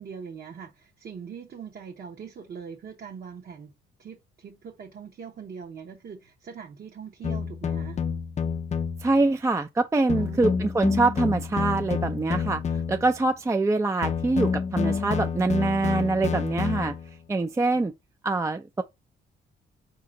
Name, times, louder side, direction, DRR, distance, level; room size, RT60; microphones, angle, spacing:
voice 1, 0.0-3.7 4.0-8.0 10.2-10.7 17.7-17.9, right 6 dB, 50° right, 1.0 m, -42 dB
sound 1, 7.2-9.1 10.1-13.2 14.0-17.2, left 6 dB, 35° left, 0.6 m, -29 dB
voice 2, 9.0-12.6 12.9-16.9 17.3-17.9 18.2-18.8, right 3 dB, 15° right, 0.4 m, -24 dB
4.3 x 2.8 x 3.7 m
cardioid pair, 90°, 20 cm